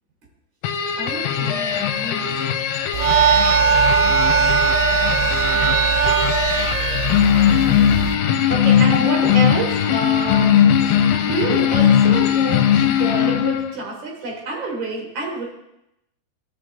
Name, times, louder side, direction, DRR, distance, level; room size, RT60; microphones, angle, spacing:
sound 1, 0.6-13.8, left 9 dB, 90° left, 2.7 m, -19 dB
voice 1, 1.0-2.4 8.5-15.4, right 2 dB, 35° right, -2 dB, 2.9 m, -28 dB
sound 2, 2.9-8.1, right 7 dB, 80° right, 2.5 m, -19 dB
14.5 x 5.7 x 3.7 m, 0.85 s
omnidirectional pair, 4.6 m